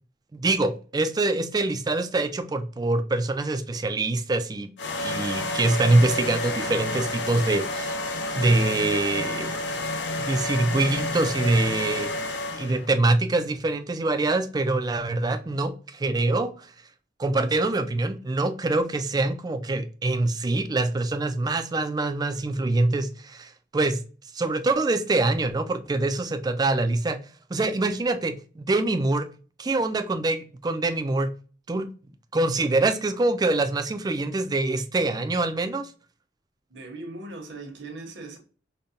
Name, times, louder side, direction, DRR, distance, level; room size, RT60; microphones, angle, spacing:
voice 1, 0.3-4.7 5.0-8.0 8.4-9.6 10.2-12.1 12.5-16.5 17.2-24.0 24.3-27.2 27.5-29.3 29.6-31.3 31.7-31.9 32.3-35.9, right 2 dB, 20° right, 0.3 m, -24 dB
sound 1, 4.8-12.9, left 2 dB, 70° left, 0.6 m, -30 dB
voice 2, 36.7-38.4, right 2 dB, 70° right, 1.0 m, -39 dB
5.2 x 2.2 x 2.6 m
head